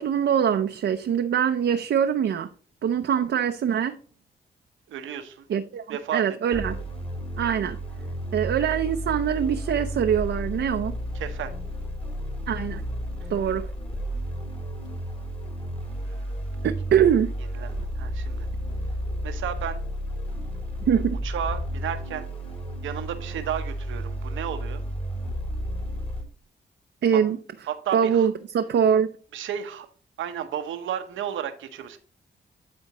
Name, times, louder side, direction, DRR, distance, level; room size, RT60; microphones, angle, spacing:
voice 1, 0.0-2.5 2.8-3.9 5.5-6.8 7.4-7.8 8.3-10.9 12.5-12.8 13.3-13.6 16.6-17.3 20.9-21.2 27.0-27.4 27.9-29.1, right 8 dB, 70° right, 5 dB, 0.6 m, -23 dB
voice 2, 4.9-5.4 5.9-6.6 11.1-11.5 16.0-16.7 17.5-18.5 19.2-19.8 21.2-22.3 22.8-24.8 27.7-28.3 29.3-29.9 30.2-32.0, right 9 dB, 90° right, 9 dB, 0.9 m, -33 dB
sound 1, 6.5-26.2, equal, 30° left, 3.1 m, -32 dB
12.0 x 4.4 x 2.9 m, 0.43 s
supercardioid pair, 55°, 20 cm